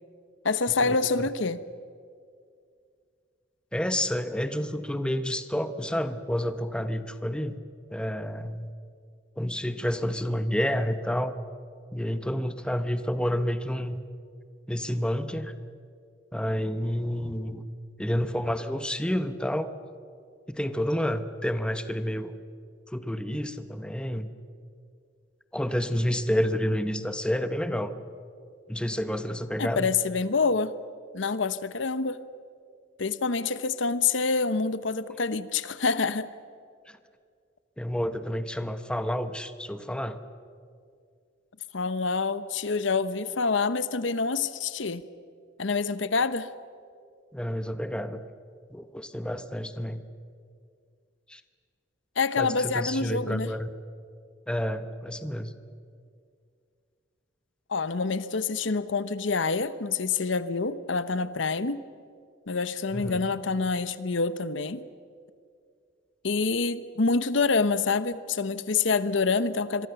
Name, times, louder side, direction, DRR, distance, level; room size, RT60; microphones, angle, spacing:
voice 1, 0.4-1.6 29.6-30.8 31.1-32.2 33.0-36.3 41.7-45.0 45.6-46.5 52.2-53.5 57.7-61.8 62.5-64.9 66.2-69.9, left 4 dB, 75° left, 0.9 m, -27 dB
voice 2, 3.7-7.6 7.9-8.7 9.4-11.4 11.9-14.0 14.7-15.5 16.3-17.6 18.0-19.7 20.5-22.4 22.9-24.3 25.5-27.9 28.7-29.9 37.8-40.2 47.3-48.2 48.7-50.0 51.3-51.4 52.4-53.7 54.5-55.5 62.9-63.3, equal, 5° left, 0.9 m, -29 dB
26.0 x 23.0 x 6.9 m
head